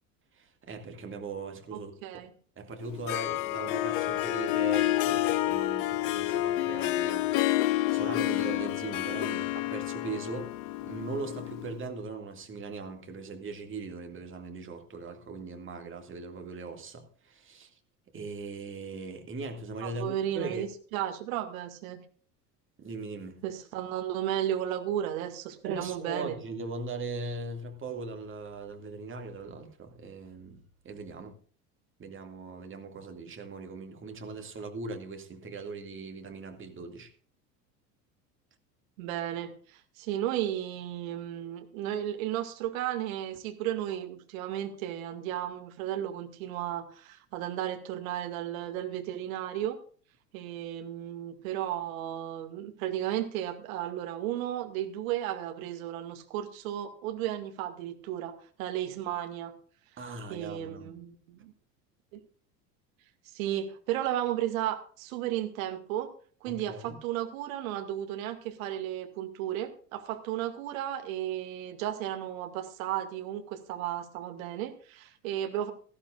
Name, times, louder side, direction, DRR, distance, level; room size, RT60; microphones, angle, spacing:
voice 1, 0.3-2.2 2.6-10.5 10.8-17.7 18.1-20.7 22.8-23.4 25.6-31.4 32.0-37.1 60.0-60.9 66.5-67.0, right 3 dB, 25° right, 2.3 m, -40 dB
voice 2, 1.7-2.3 19.8-22.0 23.4-26.4 39.0-49.8 50.3-59.5 60.3-61.5 62.1-62.2 63.3-66.1 66.4-75.7, right 12 dB, 55° right, 2.2 m, -34 dB
Harp, 2.8-11.8, left 15 dB, 50° left, 0.8 m, -29 dB
18.0 x 14.0 x 2.5 m
figure-of-eight pair, 75°, 48 cm